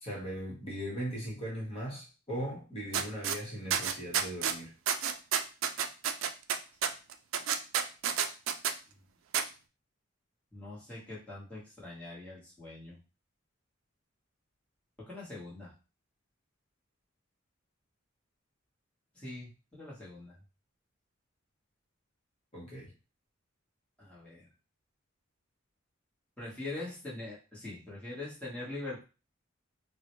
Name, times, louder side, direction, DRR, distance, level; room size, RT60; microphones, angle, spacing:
voice 1, 0.0-4.7 22.5-22.9, equal, 30° left, -3 dB, 1.2 m, -39 dB
sound 1, 2.9-3.4 3.7-4.6 4.9-8.7 9.3-9.4, right 8 dB, 75° right, 0.4 m, -30 dB
voice 2, 10.5-13.0 15.0-15.7 19.1-20.4 24.0-24.5 26.4-29.0, left 2 dB, 5° left, -7 dB, 1.1 m, -43 dB
3.8 x 2.1 x 3.0 m, 0.32 s
head